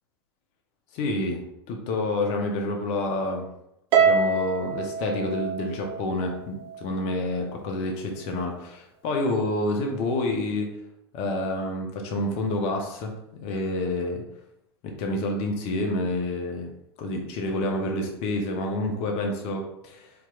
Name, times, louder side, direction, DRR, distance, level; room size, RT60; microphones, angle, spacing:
voice 1, 0.9-3.5 4.0-10.7 11.1-13.1 13.4-14.2 14.8-16.7 17.0-20.1, left 2 dB, 50° left, 2 dB, 0.8 m, -28 dB
Harp, 3.9-6.4, right 5 dB, 40° right, 0.5 m, -24 dB
4.6 x 2.9 x 2.4 m, 0.81 s
hypercardioid pair, 90°, 14 cm